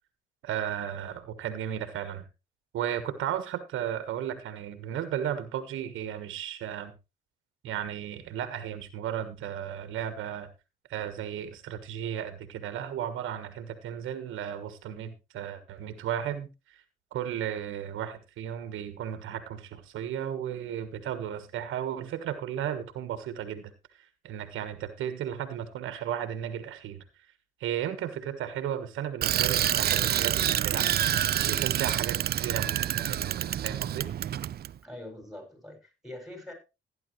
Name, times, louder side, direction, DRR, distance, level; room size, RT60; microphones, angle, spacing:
voice 1, 0.4-2.3 2.7-6.9 7.6-10.5 10.9-16.8 17.1-27.0 27.6-30.9 31.4-34.1, right 10 dB, 80° right, 10 dB, 1.5 m, -34 dB
Bicycle, 29.2-34.7, right 11 dB, 50° right, 0.5 m, -27 dB
voice 2, 34.8-36.5, left 1 dB, ahead, 4 dB, 6.6 m, -43 dB
14.5 x 10.5 x 3.2 m, 0.27 s
cardioid pair, 90°, 20 cm